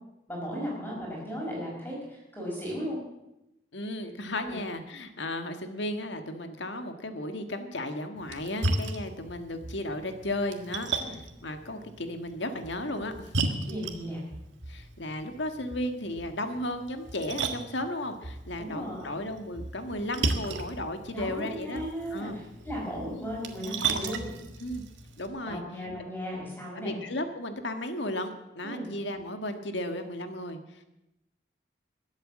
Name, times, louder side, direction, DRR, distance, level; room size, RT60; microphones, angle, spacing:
voice 1, 0.3-3.0 4.4-4.6 11.0-11.1 13.6-14.2 18.6-19.2 21.1-24.3 25.5-27.0 28.6-28.9, equal, 10° left, -3 dB, 5.0 m, -36 dB
voice 2, 3.7-13.3 14.7-21.8 22.1-22.4 23.1-23.3 24.6-24.8 25.2-25.6 26.8-30.8, left 1 dB, 80° left, 7 dB, 1.7 m, -35 dB
Splash splatter, 8.2-25.3, right 3 dB, 90° right, 1.7 m, -36 dB
21.5 x 8.2 x 7.5 m, 0.90 s
head